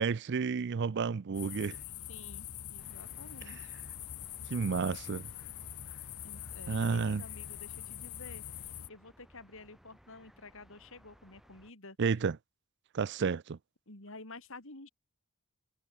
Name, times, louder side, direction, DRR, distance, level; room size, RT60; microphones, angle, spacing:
voice 1, 0.0-1.8 3.5-3.6 4.5-5.2 6.7-7.2 12.0-12.4 12.9-13.6, right 5 dB, 50° right, 0.5 m, -31 dB
sound 1, 1.3-8.9, left 10 dB, 85° left, 1.3 m, -44 dB
voice 2, 2.1-3.7 6.2-8.4 8.9-12.0 13.9-14.9, left 3 dB, 65° left, 4.1 m, -51 dB
sound 2, 2.8-11.7, equal, ahead, 7.2 m, -62 dB
head